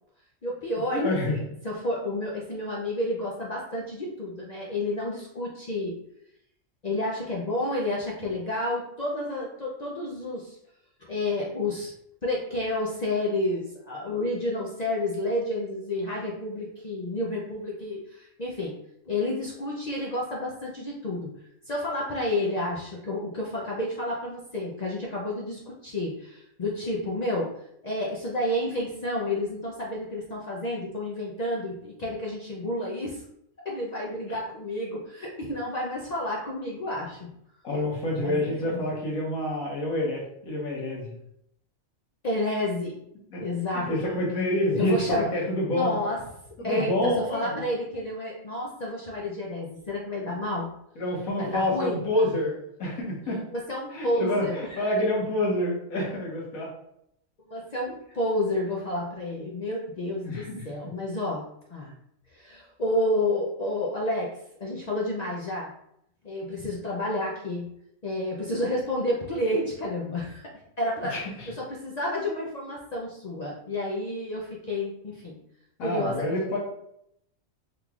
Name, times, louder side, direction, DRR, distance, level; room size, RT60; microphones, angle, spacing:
voice 1, 0.4-6.0 6.8-10.6 11.0-11.9 12.2-18.7 19.1-21.3 21.7-27.5 27.8-33.2 33.6-37.3 38.2-38.9 42.2-43.0 43.4-44.2 44.7-45.3 45.7-46.2 46.6-50.7 51.4-52.0 53.5-54.8 57.5-61.4 61.7-61.9 62.3-64.3 64.6-65.7 66.2-67.7 68.0-70.4 70.8-71.1 71.5-75.4 75.8-76.6, left 1 dB, 65° left, -4 dB, 0.4 m, -30 dB
voice 2, 0.9-1.3 37.6-41.1 43.3-43.4 43.7-46.0 46.6-47.6 51.0-53.4 53.9-56.7 60.2-60.6 71.1-71.5 75.8-76.6, left 1 dB, 85° left, -3 dB, 1.5 m, -27 dB
3.7 x 3.1 x 2.3 m, 0.75 s
omnidirectional pair, 1.4 m